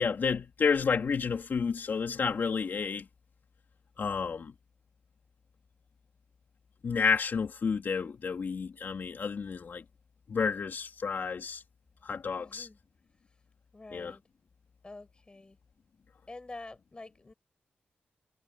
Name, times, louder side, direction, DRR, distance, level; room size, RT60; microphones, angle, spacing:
voice 1, 0.0-3.1 4.0-4.5 6.8-9.8 10.3-11.6 12.0-12.7 13.9-14.1, left 5 dB, 65° left, 3.5 m, -30 dB
voice 2, 12.4-12.8 13.7-14.2 14.8-15.6 16.3-17.3, left 2 dB, 25° left, 8.0 m, -47 dB
wide cardioid pair, 100°, 4 cm